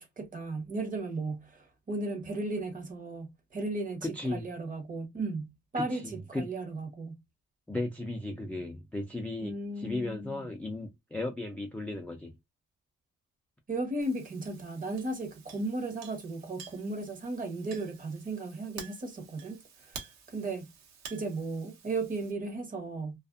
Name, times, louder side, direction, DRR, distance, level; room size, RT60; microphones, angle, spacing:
voice 1, 0.0-7.2 9.4-10.4 13.7-20.6 21.1-23.2, right 2 dB, 30° right, 0.9 m, -35 dB
voice 2, 4.0-4.5 5.8-6.5 7.7-12.3, left 2 dB, 5° left, 0.4 m, -36 dB
Chink clink, 14.0-22.3, right 6 dB, 60° right, 1.0 m, -50 dB
2.5 x 2.4 x 2.4 m
cardioid pair, 135°, 30 cm